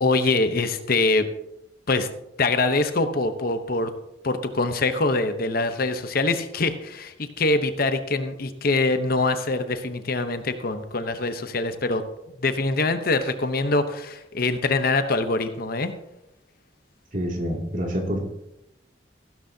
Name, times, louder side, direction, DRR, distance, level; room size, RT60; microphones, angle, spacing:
voice 1, 0.0-1.2 1.9-2.1 2.4-3.9 4.2-12.0 12.4-15.9, left 3 dB, 50° left, 9 dB, 0.8 m, -24 dB
voice 2, 17.1-18.3, equal, 45° right, 0 dB, 2.5 m, -27 dB
15.5 x 12.0 x 2.8 m, 0.87 s
head